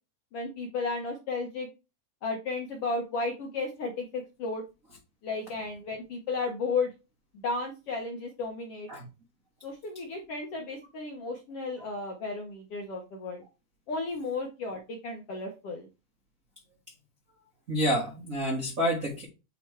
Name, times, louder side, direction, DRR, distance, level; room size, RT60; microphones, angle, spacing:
voice 1, 0.3-1.7 2.2-4.6 5.2-6.9 7.3-8.9 9.6-13.4 13.9-15.9, left 3 dB, 70° left, 1 dB, 1.4 m, -34 dB
voice 2, 17.7-19.2, equal, 70° right, 0 dB, 0.7 m, -28 dB
7.9 x 3.1 x 4.4 m, 0.28 s
omnidirectional pair, 3.9 m